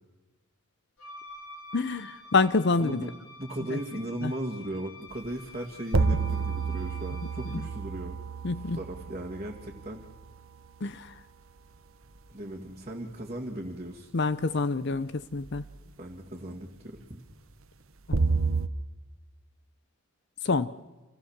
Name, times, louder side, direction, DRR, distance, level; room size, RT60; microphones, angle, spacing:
Wind instrument woodwind instrument, 1.0-7.8, left 2 dB, 85° left, 3.5 m, -49 dB
voice 1, 1.7-3.0 3.7-3.8 4.2-4.3 7.5-7.6 8.4-8.8 10.8-11.1 14.1-15.6 18.1-18.2 20.4-20.7, left 3 dB, 50° left, 14 dB, 0.7 m, -27 dB
voice 2, 2.8-3.1 3.4-8.2 8.5-10.0 12.3-14.1 16.0-17.2, right 1 dB, 30° right, -4 dB, 2.2 m, -37 dB
sound 1, 5.1-5.2 5.9-10.4 15.4-15.7 18.1-18.7, right 4 dB, 75° right, 1.0 m, -29 dB
27.5 x 17.0 x 7.3 m, 1.2 s
head